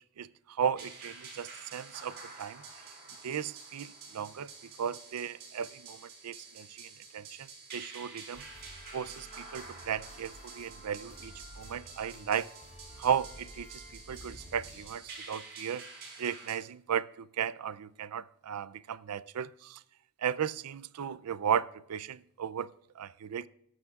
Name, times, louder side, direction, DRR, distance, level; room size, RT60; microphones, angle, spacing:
voice 1, 0.6-2.6 3.2-4.5 4.8-7.5 7.7-8.4 8.9-12.5 13.0-15.8 16.2-19.8 20.2-22.7 23.0-23.5, right 8 dB, 90° right, 0.4 m, -35 dB
sound 1, 0.8-16.6, right 4 dB, 45° right, 4.7 m, -49 dB
sound 2, 8.3-14.9, equal, 30° left, 4.6 m, -51 dB
20.5 x 11.0 x 2.4 m
head